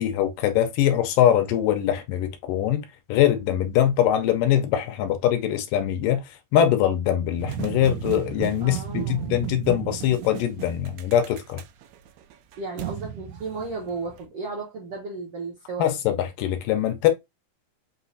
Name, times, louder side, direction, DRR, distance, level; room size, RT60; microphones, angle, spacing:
voice 1, 0.0-6.2 6.5-11.6 15.8-17.1, left 11 dB, 80° left, 2.1 m, -22 dB
sound 1, 7.4-14.2, right 11 dB, 85° right, 2.2 m, -34 dB
voice 2, 8.6-9.4 12.6-15.9, right 3 dB, 65° right, 1.5 m, -34 dB
5.6 x 2.9 x 2.6 m
omnidirectional pair, 4.0 m